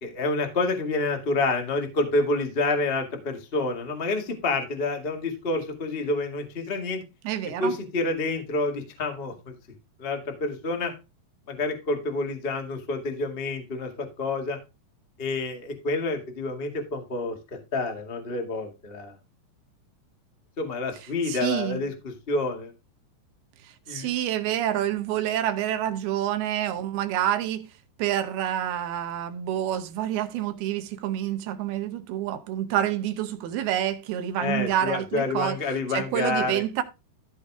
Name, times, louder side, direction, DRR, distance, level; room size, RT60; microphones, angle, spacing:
voice 1, 0.0-7.0 7.6-9.5 10.0-10.9 11.5-14.6 15.2-17.4 17.7-19.1 20.6-22.7 23.9-24.1 34.4-36.6, left 3 dB, 80° left, 0.5 m, -28 dB
voice 2, 7.2-7.8 21.3-21.8 23.6-27.7 28.0-35.6 35.9-36.8, right 11 dB, 75° right, 2.5 m, -28 dB
14.5 x 4.9 x 3.5 m
omnidirectional pair, 5.0 m